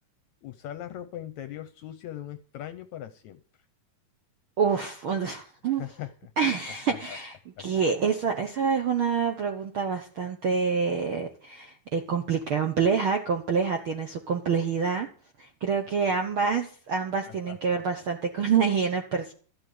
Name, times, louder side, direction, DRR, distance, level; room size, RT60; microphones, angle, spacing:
voice 1, 0.4-3.4 5.6-6.3 6.9-7.2 7.6-7.7 17.3-17.6, left 12 dB, 75° left, 10 dB, 1.8 m, -40 dB
voice 2, 4.6-5.9 6.4-15.1 15.4-19.3, right 6 dB, 65° right, 4 dB, 1.3 m, -27 dB
13.5 x 6.5 x 9.3 m, 0.41 s
omnidirectional pair, 3.9 m